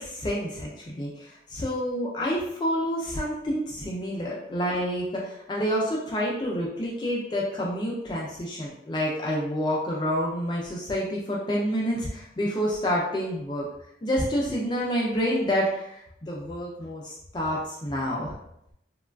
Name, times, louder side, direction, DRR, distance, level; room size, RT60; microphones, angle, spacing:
voice 1, 0.0-13.7 14.0-18.3, equal, 25° left, -4 dB, 0.3 m, -28 dB
2.9 x 2.3 x 2.2 m, 0.78 s
head